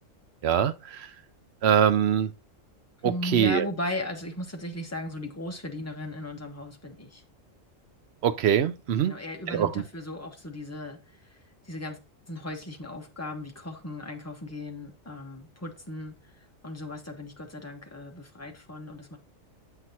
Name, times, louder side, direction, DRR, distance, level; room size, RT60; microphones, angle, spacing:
voice 1, 0.4-1.1 1.6-2.3 3.0-3.7 8.2-9.1 9.5-9.7, right 9 dB, 65° right, 0.7 m, -23 dB
voice 2, 3.0-7.2 9.0-11.0 11.6-12.0 12.3-16.1 16.6-19.2, left 1 dB, 15° left, 1.0 m, -36 dB
7.7 x 6.0 x 2.8 m
omnidirectional pair, 1.4 m